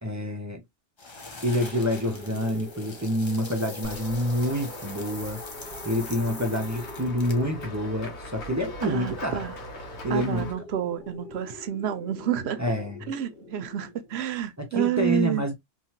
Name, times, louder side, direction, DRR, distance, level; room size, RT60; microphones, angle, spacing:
voice 1, 0.0-0.6 1.4-5.4 5.8-9.4 10.0-10.5 12.6-13.0 14.6-15.5, equal, 25° right, 0.4 m, -27 dB
sound 1, 1.0-7.6, left 3 dB, 30° left, 0.6 m, -43 dB
sound 2, 1.5-14.3, left 1 dB, 55° left, 1.4 m, -44 dB
Run / Walk footsteps / Bell, 3.8-10.5, left 1 dB, 75° left, 1.2 m, -42 dB
voice 2, 8.8-9.6 10.1-12.6 13.1-15.4, right 10 dB, 70° right, 0.8 m, -29 dB
3.1 x 2.3 x 2.7 m
omnidirectional pair, 1.1 m